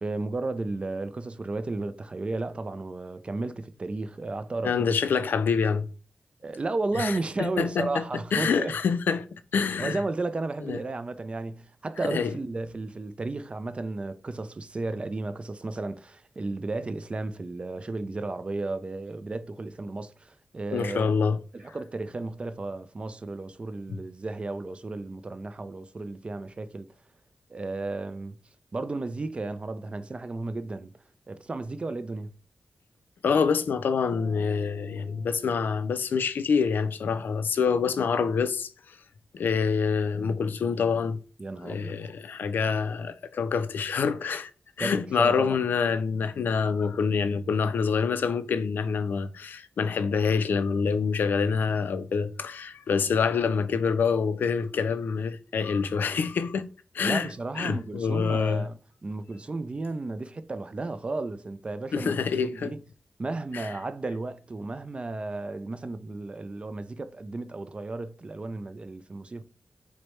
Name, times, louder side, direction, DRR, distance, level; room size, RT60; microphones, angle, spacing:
voice 1, 0.0-4.8 6.4-8.7 9.8-21.1 21.5-26.9 27.5-28.4 28.7-30.9 31.3-32.3 41.4-42.0 44.8-45.6 57.0-62.1 62.4-62.8 63.2-69.4, right 2 dB, 35° right, 0.3 m, -33 dB
voice 2, 4.6-5.9 6.9-8.0 8.3-9.3 9.5-10.0 10.6-10.8 12.0-12.3 20.7-21.4 33.2-39.0 39.3-41.2 41.6-44.5 44.8-56.7 56.9-57.3 57.6-58.7 61.9-62.7 63.5-63.7, left 5 dB, 80° left, 0.3 m, -26 dB
sound 1, 34.1-37.5, equal, 25° left, 1.2 m, -50 dB
4.4 x 2.1 x 3.1 m
cardioid pair, 70°, 3 cm